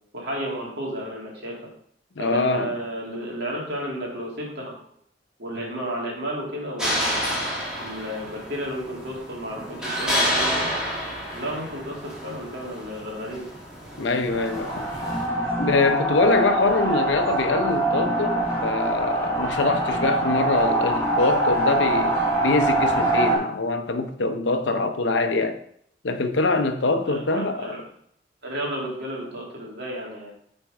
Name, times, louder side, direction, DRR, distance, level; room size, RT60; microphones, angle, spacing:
voice 1, 0.1-1.6 2.2-4.7 5.4-7.4 7.8-10.7 11.3-13.5 27.0-27.8 28.4-30.3, equal, 60° right, 2.6 m, -32 dB
voice 2, 2.2-2.7 14.0-14.9 15.6-25.6 26.0-27.8, left 3 dB, 70° left, 0.7 m, -24 dB
sound 1, 6.8-15.3, equal, 5° right, 2.2 m, -29 dB
sound 2, 14.3-23.4, right 1 dB, 15° left, 3.3 m, -24 dB
7.5 x 4.5 x 4.8 m
head